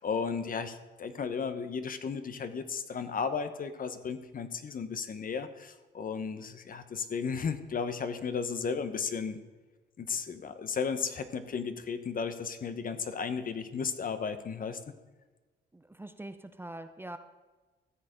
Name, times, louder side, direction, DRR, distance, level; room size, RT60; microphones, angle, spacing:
voice 1, 0.0-9.4 10.0-14.8, left 5 dB, 45° left, 10 dB, 0.9 m, -34 dB
voice 2, 15.7-17.2, right 1 dB, 10° right, 9 dB, 0.6 m, -43 dB
14.0 x 6.8 x 5.0 m, 1.3 s
cardioid pair, 90°, 20 cm